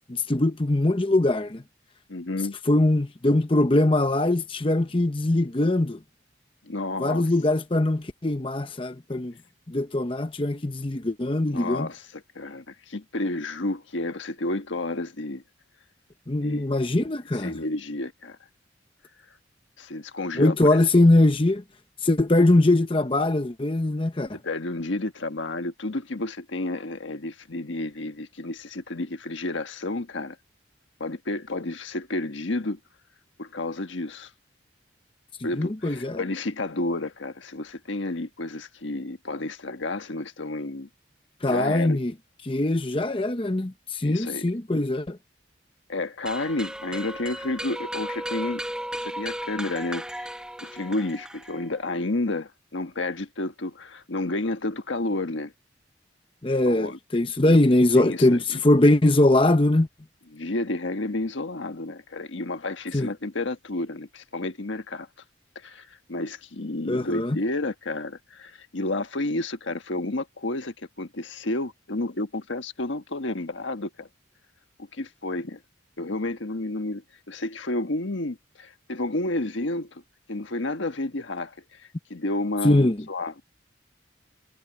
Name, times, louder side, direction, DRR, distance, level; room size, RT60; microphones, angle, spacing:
voice 1, 0.1-1.6 2.7-6.0 7.0-9.3 9.7-11.9 16.3-17.5 20.4-21.6 22.0-24.3 35.6-36.2 41.4-42.1 42.4-45.2 56.4-59.9 62.9-63.1 66.9-67.4 82.6-83.0, left 1 dB, 25° left, 0.8 m, -22 dB
voice 2, 2.1-2.6 6.6-7.3 11.5-12.1 12.3-15.4 16.4-16.6 17.4-18.4 19.8-20.8 24.4-30.3 31.0-32.8 33.4-34.3 35.4-40.9 41.4-42.0 44.0-44.4 45.9-48.6 49.0-50.3 50.6-55.5 56.6-57.0 57.9-58.6 60.3-65.1 65.6-74.1 74.9-75.6 76.0-80.0 80.3-83.3, left 2 dB, 80° left, 1.4 m, -31 dB
sound 1, 46.2-51.8, right 1 dB, 5° right, 1.3 m, -35 dB
head